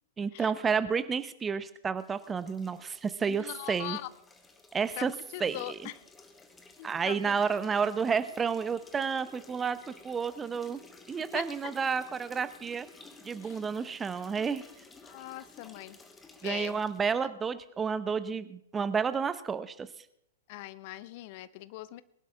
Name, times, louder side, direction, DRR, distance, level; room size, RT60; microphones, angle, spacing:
voice 1, 0.2-4.0 4.7-5.1 5.4-5.6 6.8-10.8 11.1-12.9 13.2-14.6 16.4-19.9, right 6 dB, 15° right, 13 dB, 0.9 m, -31 dB
sound 1, 2.0-17.1, left 3 dB, 10° left, 1.8 m, -55 dB
voice 2, 3.3-4.1 4.9-5.9 6.8-7.4 11.3-11.7 13.4-13.6 15.0-16.0 16.4-16.7 17.2-17.3 20.5-22.0, left 17 dB, 40° left, 17 dB, 0.7 m, -41 dB
22.0 x 12.0 x 3.6 m, 0.73 s
figure-of-eight pair, 110°, 0 cm